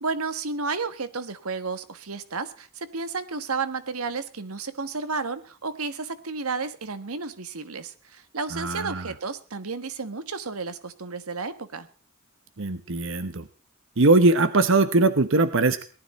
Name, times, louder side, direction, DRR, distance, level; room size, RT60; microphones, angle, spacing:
voice 1, 0.0-11.9, right 4 dB, 90° right, 12 dB, 1.4 m, -32 dB
voice 2, 8.5-9.1 12.6-13.4 14.0-15.8, right 2 dB, 60° right, 12 dB, 1.0 m, -21 dB
18.5 x 12.5 x 4.2 m, 0.37 s
head